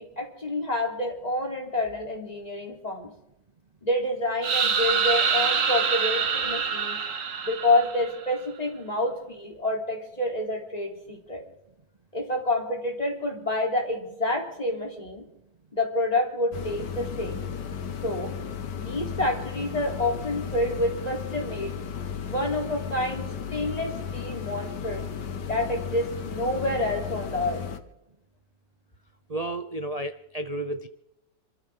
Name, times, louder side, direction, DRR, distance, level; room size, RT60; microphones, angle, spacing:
voice 1, 0.0-3.1 3.8-7.0 7.4-11.4 12.1-15.2 15.7-17.4 18.0-18.3 18.8-21.7 22.2-23.2 23.5-25.0 25.5-27.6, left 1 dB, 20° left, 0 dB, 3.7 m, -28 dB
sound 1, 4.4-8.2, right 6 dB, 50° right, 1.5 m, -25 dB
sound 2, 16.5-27.8, left 7 dB, 70° left, 1.7 m, -35 dB
voice 2, 29.3-30.9, right 1 dB, 80° right, 9 dB, 0.3 m, -32 dB
27.5 x 14.0 x 3.8 m, 0.84 s
omnidirectional pair, 2.0 m